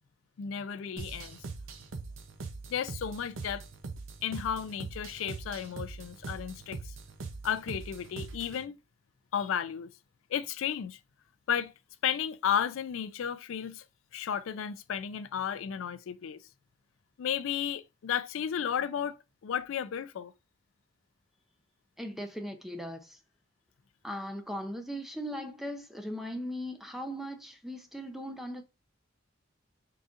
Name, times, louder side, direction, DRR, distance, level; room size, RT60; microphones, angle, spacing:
voice 1, 0.4-1.4 2.7-3.6 4.2-6.9 7.4-8.8 9.3-9.9 10.3-11.0 11.5-11.7 12.0-13.8 14.1-16.4 17.2-20.3, left 8 dB, 80° left, 0.4 m, -33 dB
sound 1, 1.0-8.6, right 3 dB, 80° right, 0.6 m, -42 dB
voice 2, 22.0-23.2 24.0-28.6, equal, ahead, 0.6 m, -38 dB
3.9 x 3.8 x 2.4 m
head